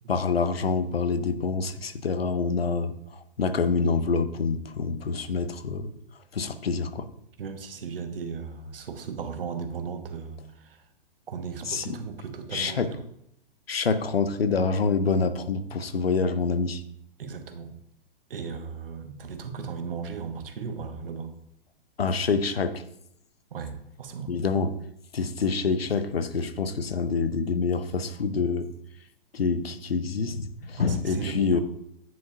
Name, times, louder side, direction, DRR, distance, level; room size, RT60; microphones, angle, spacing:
voice 1, 0.1-2.9 3.4-5.9 6.3-7.1 11.7-12.0 12.5-12.9 13.7-16.8 22.0-22.8 24.3-24.7 25.1-28.7 29.3-31.6, left 4 dB, 90° left, 11 dB, 0.7 m, -26 dB
voice 2, 7.4-10.8 11.3-13.0 17.2-17.7 18.3-21.3 23.5-24.4 30.9-31.6, right 6 dB, 70° right, 8 dB, 1.0 m, -36 dB
9.3 x 4.8 x 2.7 m, 0.74 s
figure-of-eight pair, 110°, 29 cm